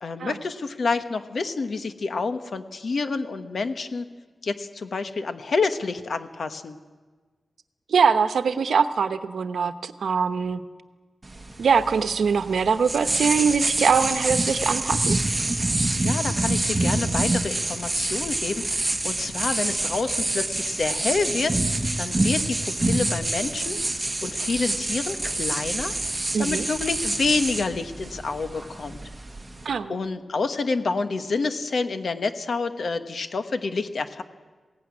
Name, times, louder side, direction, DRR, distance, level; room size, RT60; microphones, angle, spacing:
voice 1, 0.0-4.1 4.4-6.8 16.0-29.0 29.9-34.2, left 4 dB, 55° left, 9 dB, 1.3 m, -28 dB
voice 2, 7.9-10.6 11.6-15.2 26.3-26.7 29.6-30.0, right 6 dB, 90° right, 11 dB, 1.0 m, -22 dB
sound 1, 11.2-29.7, right 2 dB, 15° right, 1.6 m, -27 dB
21.5 x 16.5 x 9.8 m, 1.4 s
wide cardioid pair, 180°, 0 cm